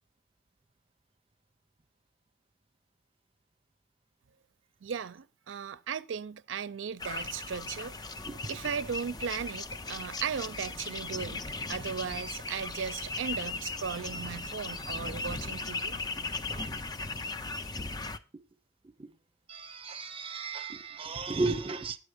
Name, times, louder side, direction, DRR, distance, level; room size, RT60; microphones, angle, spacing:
voice 1, 4.8-7.9 8.5-16.0, right 6 dB, 85° right, 0.5 m, -37 dB
sound 1, 7.0-18.2, left 3 dB, 20° left, 0.5 m, -37 dB
voice 2, 19.5-22.0, right 3 dB, 30° right, 0.8 m, -34 dB
9.7 x 7.9 x 5.0 m
head